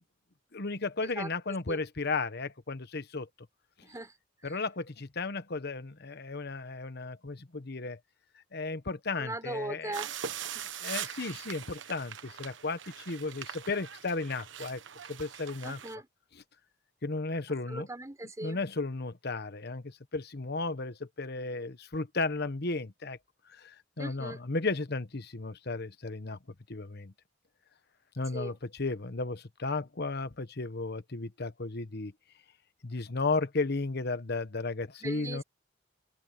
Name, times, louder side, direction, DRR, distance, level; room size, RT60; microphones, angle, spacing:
voice 1, 0.5-3.3 4.4-8.0 8.5-10.0 10.8-14.8 15.1-15.8 16.3-16.4 17.0-17.9 18.4-23.2 23.5-26.4 26.7-27.1 28.2-32.1 32.8-35.4, left 3 dB, 60° left, 1.2 m, -34 dB
voice 2, 3.8-4.1 9.2-10.1 10.5-10.6 15.6-16.1 17.7-18.6 24.0-24.4 28.3-28.6 35.0-35.4, right 1 dB, 15° right, 4.0 m, -39 dB
sound 1, 9.9-16.0, right 8 dB, 75° right, 1.1 m, -41 dB
open air
head